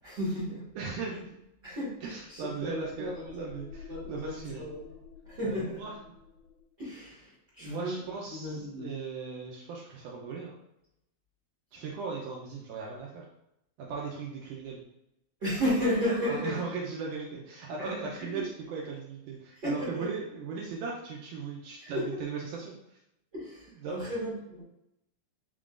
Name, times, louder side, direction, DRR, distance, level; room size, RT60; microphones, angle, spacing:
voice 1, 0.0-0.6 1.6-3.4 3.9-4.8 5.2-5.8 6.8-8.9 15.4-16.7 17.8-18.5 19.5-20.1 21.8-22.2 23.3-24.6, equal, 45° right, -9 dB, 1.4 m, -34 dB
voice 2, 0.7-1.3 2.0-3.7 4.1-4.6 5.4-5.9 7.6-10.6 11.7-13.3 13.8-14.8 16.3-18.4 18.7-23.0 23.8-23.9, right 5 dB, 90° right, -2 dB, 1.7 m, -38 dB
sound 1, 2.0-6.7, left 5 dB, 90° left, 2.6 m, -49 dB
5.3 x 3.8 x 2.5 m, 0.82 s
omnidirectional pair, 4.5 m